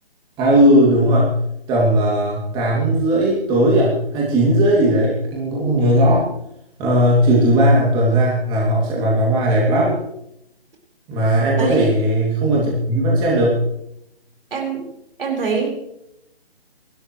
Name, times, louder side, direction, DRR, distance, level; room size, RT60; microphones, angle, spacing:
voice 1, 0.4-1.4 1.7-6.2 6.8-9.9 11.1-13.6, right 1 dB, 15° right, -4 dB, 2.8 m, -17 dB
voice 2, 11.6-11.9 14.5-14.9 15.2-15.7, right 4 dB, 60° right, 1 dB, 5.0 m, -23 dB
28.5 x 12.5 x 3.3 m, 0.80 s
hypercardioid pair, 155°, 31 cm